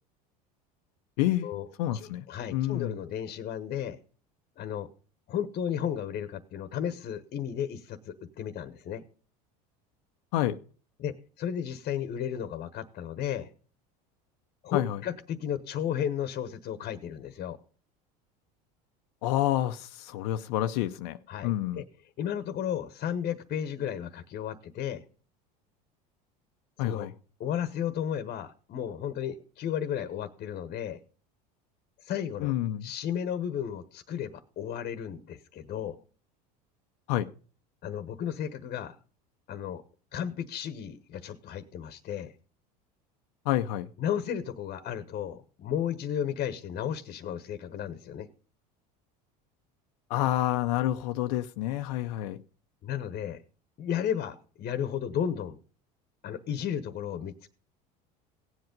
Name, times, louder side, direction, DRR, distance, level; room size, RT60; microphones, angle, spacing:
voice 1, 1.2-1.5 1.8-2.2 2.5-2.9 10.3-10.6 14.7-15.0 19.2-21.8 26.8-27.1 32.4-32.9 37.1-37.3 43.5-43.9 50.1-52.4, left 14 dB, 75° left, 0.7 m, -28 dB
voice 2, 1.9-4.0 4.6-4.9 5.3-9.0 11.0-13.5 14.6-17.6 21.3-21.8 22.2-25.0 26.8-27.1 27.4-31.0 32.0-32.5 32.8-36.0 37.8-39.0 39.5-39.8 40.1-42.3 44.0-48.3 52.8-53.4 53.8-55.6 56.2-57.5, left 9 dB, 45° left, 1.1 m, -33 dB
16.5 x 8.0 x 5.2 m
supercardioid pair, 100°, 20 cm